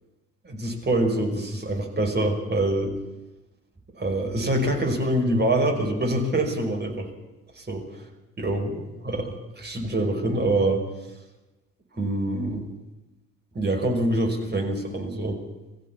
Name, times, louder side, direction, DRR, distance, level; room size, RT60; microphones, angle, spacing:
voice 1, 0.4-2.9 4.0-7.1 7.6-8.0 8.4-10.8 11.9-12.6 13.5-15.4, right 1 dB, 25° right, 2 dB, 5.5 m, -25 dB
23.0 x 15.0 x 8.6 m, 1.1 s
figure-of-eight pair, 45°, 42 cm